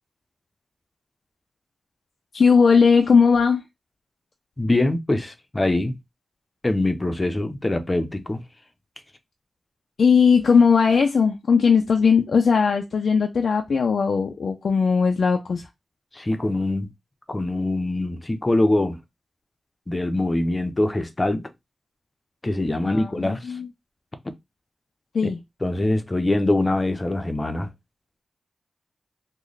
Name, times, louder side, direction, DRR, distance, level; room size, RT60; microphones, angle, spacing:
voice 1, 2.3-3.6 10.0-15.7 22.8-23.7 25.1-25.4, left 5 dB, 80° left, 0.4 m, -18 dB
voice 2, 4.6-6.0 6.6-8.4 16.1-16.9 17.3-19.0 19.9-21.5 22.4-23.6 25.6-27.7, left 2 dB, 30° left, 0.7 m, -23 dB
3.1 x 2.2 x 3.9 m
cardioid pair, 65°, 0 cm